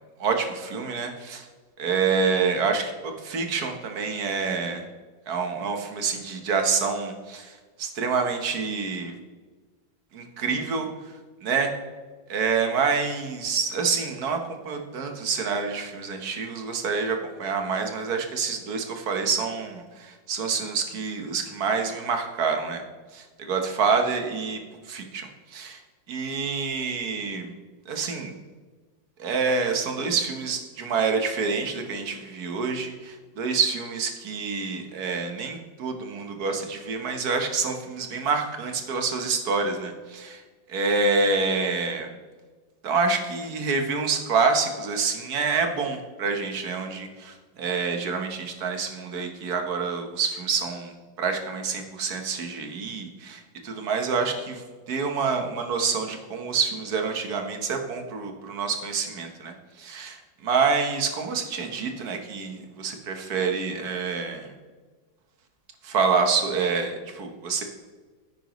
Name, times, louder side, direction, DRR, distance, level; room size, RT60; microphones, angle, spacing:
voice 1, 0.2-1.5 1.8-4.8 5.3-9.1 10.1-10.9 11.4-11.7 12.3-22.8 23.1-24.6 24.9-25.8 26.1-27.5 27.9-28.3 29.2-40.4 40.7-42.1 42.8-54.6 54.9-64.5 65.8-67.6, right 5 dB, 55° right, 5 dB, 1.5 m, -27 dB
10.0 x 9.0 x 3.1 m, 1.4 s
omnidirectional pair, 2.1 m